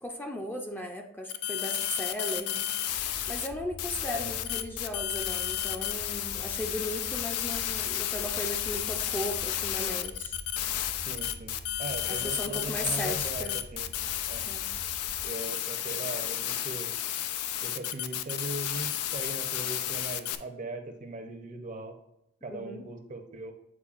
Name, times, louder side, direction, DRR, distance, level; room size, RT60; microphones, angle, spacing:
voice 1, 0.0-2.6 3.3-10.4 12.1-13.6 14.5-14.7 22.5-22.9, left 1 dB, 10° left, 2 dB, 0.5 m, -36 dB
sound 1, 1.3-3.5 3.8-20.4, left 11 dB, 90° left, 0.4 m, -32 dB
sound 2, 2.9-15.3, left 1 dB, 70° left, 0.8 m, -46 dB
voice 2, 11.1-13.9 14.3-14.5 15.2-16.9 17.6-22.0 22.4-23.5, right 2 dB, 35° right, 6 dB, 0.6 m, -39 dB
8.6 x 4.5 x 2.4 m, 0.80 s
head